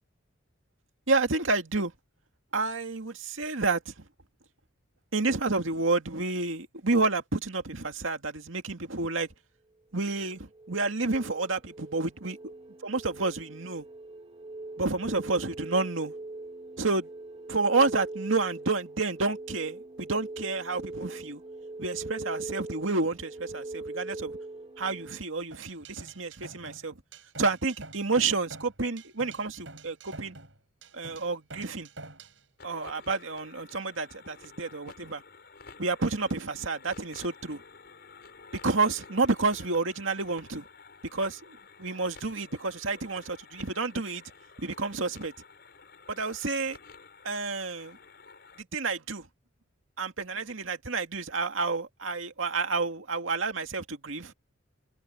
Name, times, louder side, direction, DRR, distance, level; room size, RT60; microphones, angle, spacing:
voice 1, 1.1-1.9 2.5-3.9 5.1-9.3 9.9-12.5 12.8-13.9 14.8-16.1 16.8-17.1 17.5-21.4 21.8-24.4 24.8-26.9 27.4-30.4 30.9-31.9 32.6-35.2 35.8-37.6 38.5-40.6 41.1-44.2 44.6-45.3 46.1-46.8 47.2-48.0 48.7-49.3 50.0-54.3, right 3 dB, 85° right, 2.2 m, -30 dB
sound 1, 10.4-25.2, right 2 dB, 30° right, 1.1 m, -42 dB
sound 2, 25.5-32.4, right 3 dB, 70° right, 7.8 m, -47 dB
sound 3, 32.6-48.6, left 4 dB, 55° left, 5.0 m, -51 dB
head